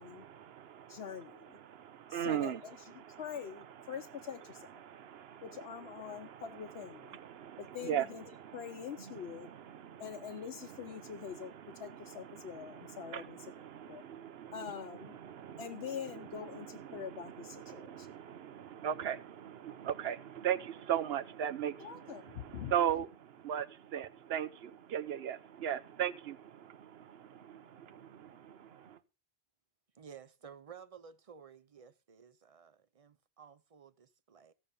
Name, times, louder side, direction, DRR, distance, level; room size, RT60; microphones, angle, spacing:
voice 1, 0.1-1.0 1.6-2.6 3.0-3.2 4.8-5.5 6.0-6.4 7.1-8.1 8.3-8.6 9.0-10.4 11.0-15.9 16.3-29.0, right 10 dB, 75° right, 1.0 m, -39 dB
voice 2, 0.9-1.6 2.1-4.7 5.4-7.2 7.6-8.2 8.5-9.5 10.0-11.5 11.8-13.5 13.9-14.0 14.5-15.2 15.6-18.1 21.8-23.0, left 8 dB, 80° left, 1.0 m, -44 dB
voice 3, 30.0-34.5, right 7 dB, 40° right, 0.6 m, -54 dB
15.5 x 5.2 x 6.9 m
omnidirectional pair, 1.1 m